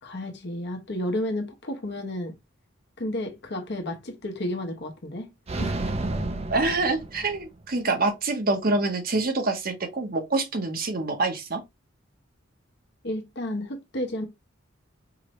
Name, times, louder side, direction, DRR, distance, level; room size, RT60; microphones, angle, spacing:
voice 1, 0.0-2.3 3.0-5.3 5.6-5.7 13.0-14.3, left 1 dB, 60° left, 1.1 m, -31 dB
sound 1, 5.5-7.7, right 2 dB, 30° right, 0.6 m, -31 dB
voice 2, 6.5-11.6, right 3 dB, 50° right, 0.9 m, -26 dB
4.8 x 2.7 x 3.1 m
head